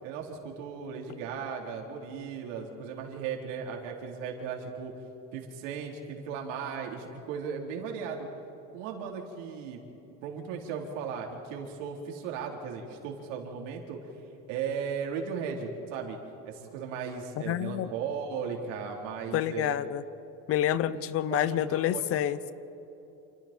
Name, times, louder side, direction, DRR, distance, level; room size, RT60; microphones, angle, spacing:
voice 1, 0.0-4.9 5.3-8.3 8.7-9.8 10.2-14.0 14.5-16.2 16.5-19.8 20.7-21.0 21.3-22.0, right 6 dB, 85° right, 0 dB, 4.0 m, -36 dB
voice 2, 17.4-17.9 19.3-20.0 20.5-22.5, left 11 dB, 40° left, 15 dB, 0.8 m, -28 dB
29.0 x 27.0 x 4.5 m, 3.0 s
cardioid pair, 150°, 36 cm